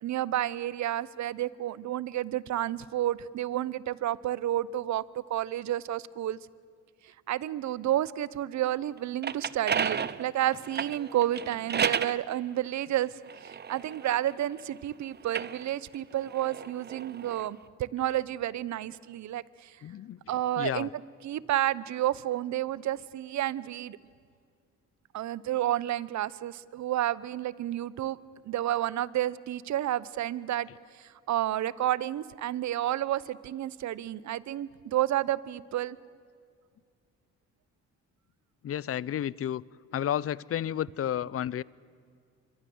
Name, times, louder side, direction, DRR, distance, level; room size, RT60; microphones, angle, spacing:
voice 1, 0.0-6.4 7.3-13.1 13.4-19.8 20.3-24.0 25.1-28.2 28.5-30.7 30.9-36.0, right 13 dB, 65° right, 20 dB, 0.8 m, -30 dB
sound 1, 9.0-12.2 13.0-14.6 15.2-17.5, right 7 dB, 35° right, 0.8 m, -33 dB
voice 2, 19.8-20.2 20.6-20.9 38.6-39.6 39.9-41.6, left 10 dB, 50° left, 23 dB, 0.6 m, -31 dB
26.5 x 23.0 x 7.9 m, 2.2 s
cardioid pair, 90°, 30 cm